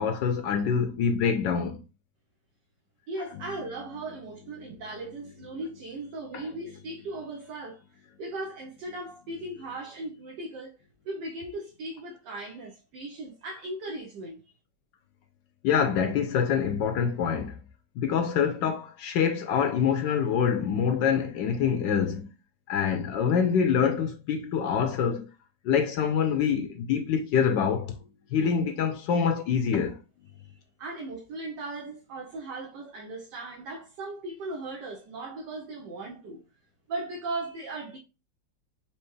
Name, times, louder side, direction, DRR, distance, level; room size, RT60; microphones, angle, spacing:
voice 1, 0.0-1.8 3.3-3.4 15.6-17.5 18.0-22.3 22.7-25.3 25.6-27.9 28.3-30.0, left 7 dB, 75° left, 1.2 m, -25 dB
voice 2, 3.1-10.7 11.0-14.4 30.3-36.4 36.9-38.0, right 2 dB, 65° right, 1.3 m, -38 dB
4.5 x 2.9 x 3.1 m
omnidirectional pair, 2.2 m